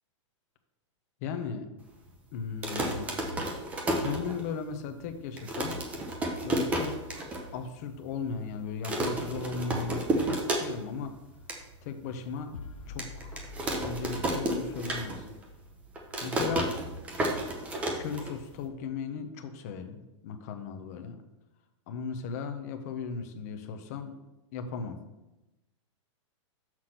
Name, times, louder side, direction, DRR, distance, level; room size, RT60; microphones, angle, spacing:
voice 1, 1.2-1.7 2.3-3.1 4.0-5.8 6.4-11.1 11.8-12.5 12.9-15.3 16.2-16.7 18.0-21.2 21.9-24.1 24.5-25.0, left 5 dB, 30° left, 6 dB, 0.7 m, -37 dB
sound 1, 2.5-4.8 5.1-5.2 5.4-7.4 7.8-7.9 8.1-8.5 8.8-11.0 11.3-11.6 12.1-12.2 13.0-15.4 15.7-18.7, right 1 dB, 10° right, 0.6 m, -31 dB
sound 2, 12.5-16.0, left 3 dB, 80° left, 0.6 m, -46 dB
6.4 x 5.9 x 5.9 m, 0.98 s
supercardioid pair, 175°, 16 cm